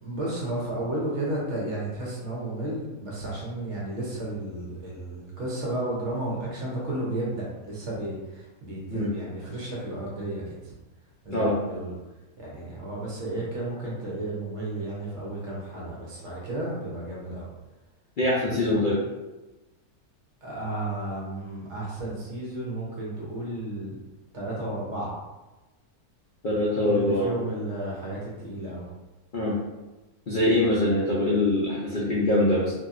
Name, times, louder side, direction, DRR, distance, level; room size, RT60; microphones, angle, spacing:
voice 1, 0.0-10.7 11.2-11.9 12.4-17.5 18.7-18.8 20.4-24.0 24.3-25.1 26.8-28.9, right 1 dB, 55° right, -5 dB, 1.0 m, -33 dB
voice 2, 18.2-19.0 26.4-27.3 29.3-29.6 30.3-32.7, left 1 dB, 65° left, -6 dB, 0.5 m, -23 dB
2.8 x 2.6 x 2.4 m, 1.1 s
omnidirectional pair, 1.6 m